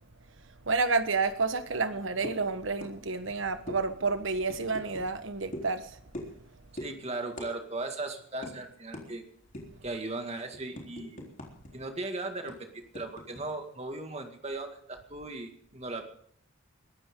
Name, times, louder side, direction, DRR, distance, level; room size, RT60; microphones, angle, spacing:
voice 1, 0.7-6.0, right 4 dB, 65° right, 1.3 m, -30 dB
sound 1, 2.2-2.5 2.8-3.0 3.2-3.4 3.7-3.8 4.5-5.1 5.5-5.7 6.1-6.4 6.8-6.9 7.4-7.5 7.8-8.0 8.4-8.5 8.9-9.1 9.5-9.8 10.2-11.7 12.0-12.1 12.5-13.4, left 1 dB, 40° left, 3.8 m, -41 dB
voice 2, 6.7-9.2 9.8-11.3 11.7-16.1, right 2 dB, 30° right, 2.1 m, -37 dB
22.0 x 14.5 x 3.8 m
head